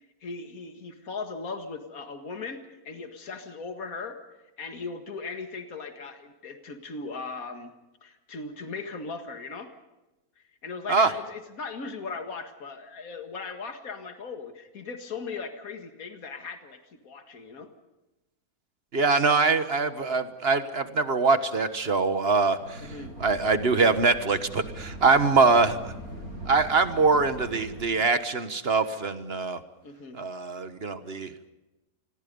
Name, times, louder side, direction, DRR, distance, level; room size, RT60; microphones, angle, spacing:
voice 1, 0.0-4.2 4.6-7.7 8.0-9.7 10.6-17.7 22.8-23.1 29.8-30.2, left 4 dB, 70° left, 6 dB, 2.3 m, -38 dB
voice 2, 18.9-22.8 23.2-25.9 26.4-29.6 30.1-31.3, right 4 dB, 45° right, 10 dB, 1.5 m, -23 dB
sound 1, 22.6-27.8, right 1 dB, 75° right, 8.2 m, -41 dB
28.0 x 21.5 x 5.4 m, 1.0 s
omnidirectional pair, 1.6 m